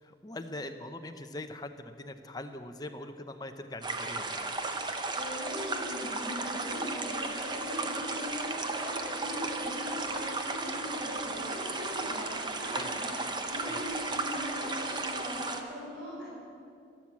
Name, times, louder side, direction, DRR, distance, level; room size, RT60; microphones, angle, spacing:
voice 1, 0.0-4.5 12.7-13.3 13.6-13.8, left 2 dB, 20° left, 7 dB, 0.7 m, -42 dB
sound 1, 3.8-15.6, right 3 dB, 25° right, 0.8 m, -35 dB
voice 2, 5.1-13.1 13.5-16.3, left 1 dB, 65° right, -8 dB, 4.4 m, -40 dB
12.5 x 12.0 x 7.3 m, 2.5 s
head